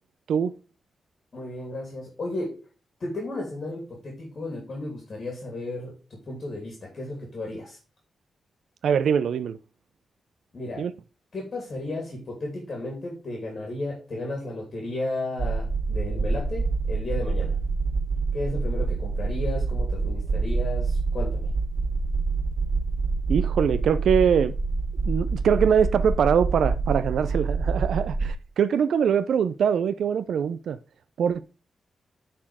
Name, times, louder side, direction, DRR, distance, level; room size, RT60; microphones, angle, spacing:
voice 1, 1.3-2.6 3.0-7.8 10.5-10.9 11.3-17.6 18.3-21.5, left 2 dB, 45° left, 2.7 m, -34 dB
voice 2, 8.8-9.6 10.8-10.9 23.3-24.6 25.1-30.8 31.2-31.4, right 7 dB, 80° right, 0.4 m, -23 dB
sound 1, 15.4-28.3, right 4 dB, 25° right, 2.7 m, -26 dB
9.9 x 4.3 x 4.8 m
wide cardioid pair, 120°, 0 cm